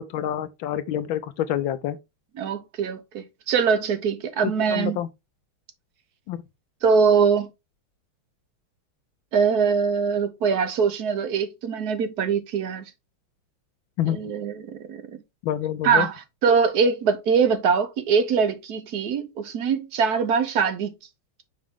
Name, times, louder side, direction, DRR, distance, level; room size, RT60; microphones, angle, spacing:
voice 1, 0.0-2.0 4.4-5.1 6.3-6.4 14.0-14.2 15.4-16.1, left 11 dB, 75° left, 1.4 m, -27 dB
voice 2, 2.4-5.0 6.8-7.5 9.3-12.9 14.1-15.2 15.8-20.9, right 6 dB, 60° right, 1.1 m, -23 dB
6.3 x 4.5 x 3.6 m
omnidirectional pair, 2.3 m